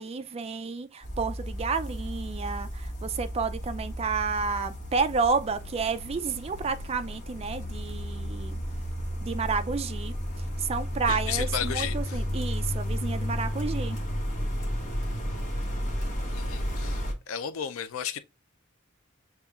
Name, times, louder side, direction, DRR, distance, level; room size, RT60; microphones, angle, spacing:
voice 1, 0.0-8.6 9.2-10.1 10.6-14.0, right 4 dB, 30° right, 0.3 m, -30 dB
sound 1, 1.0-17.1, equal, 40° left, 1.0 m, -33 dB
voice 2, 11.1-12.0 16.3-17.0 17.3-18.2, left 8 dB, 85° left, 0.4 m, -33 dB
6.7 x 2.3 x 2.3 m
head